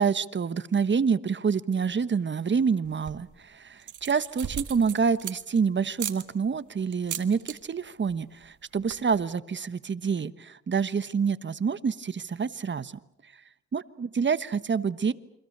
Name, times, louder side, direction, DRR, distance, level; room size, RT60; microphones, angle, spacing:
voice 1, 0.0-12.9 13.7-15.1, right 6 dB, 35° right, 14 dB, 1.2 m, -27 dB
sound 1, 2.8-3.3 3.8-5.6 6.0-6.2 6.9-7.6 7.9-8.2 8.4-8.5 8.7-9.2, right 10 dB, 75° right, 2.1 m, -37 dB
28.5 x 25.0 x 6.8 m, 0.79 s
cardioid pair, 85°, 30 cm